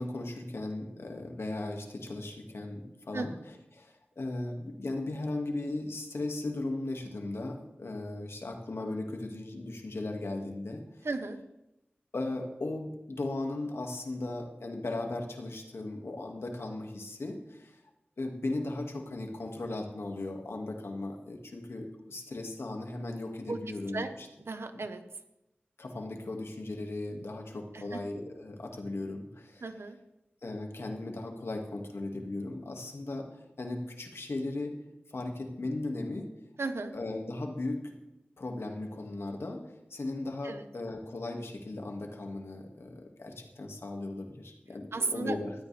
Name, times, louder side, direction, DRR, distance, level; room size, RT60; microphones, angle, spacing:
voice 1, 0.0-3.3 3.7-10.8 12.1-17.8 18.2-24.3 24.7-24.8 25.8-29.7 30.4-34.8 35.1-36.3 36.9-38.0 38.4-45.5, left 2 dB, 85° left, 3 dB, 2.1 m, -37 dB
voice 2, 11.0-11.4 23.5-23.6 23.9-24.1 24.4-25.0 27.7-28.0 29.6-30.0 36.6-36.9 40.4-40.7 44.9-45.4, right 3 dB, 85° right, 8 dB, 1.2 m, -34 dB
19.5 x 13.0 x 3.5 m, 0.89 s
wide cardioid pair, 70°, 4 cm